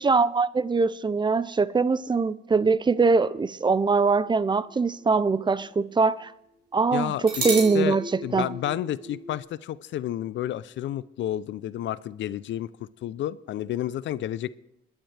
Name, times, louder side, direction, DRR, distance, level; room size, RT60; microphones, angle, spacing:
voice 1, 0.0-6.3 6.7-8.0 8.3-8.5, right 4 dB, 25° right, 0.5 m, -22 dB
sound 1, 3.9-5.6 5.9-6.0 7.3-9.4, right 2 dB, 55° right, 5.4 m, -34 dB
voice 2, 6.9-14.6, left 12 dB, 70° left, 0.5 m, -31 dB
28.5 x 10.5 x 3.3 m
cardioid pair, 90°, 20 cm